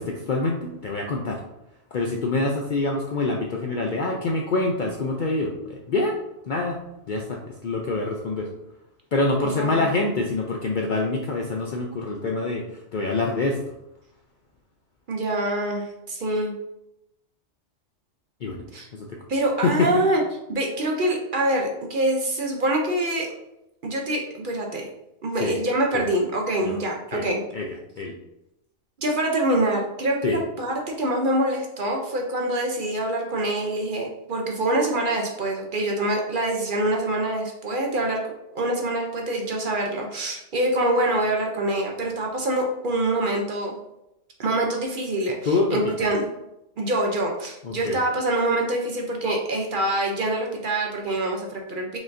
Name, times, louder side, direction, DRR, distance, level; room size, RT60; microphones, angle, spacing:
voice 1, 0.0-1.4 1.9-6.8 7.1-8.5 9.1-13.6 18.4-18.7 18.9-19.2 19.6-19.9 25.4-25.6 25.9-26.1 26.6-26.8 27.1-27.3 27.5-28.1 30.2-30.4 45.4-46.1 47.6-48.0, left 3 dB, 60° left, 0 dB, 0.5 m, -26 dB
voice 2, 9.4-9.8 15.1-16.5 18.7-18.9 19.3-20.2 20.5-23.3 23.8-24.9 25.2-27.4 29.0-38.2 38.5-43.8 44.4-46.3 46.8-52.0, right 1 dB, 50° right, 1 dB, 0.8 m, -25 dB
5.0 x 3.7 x 2.6 m, 0.87 s
omnidirectional pair, 1.3 m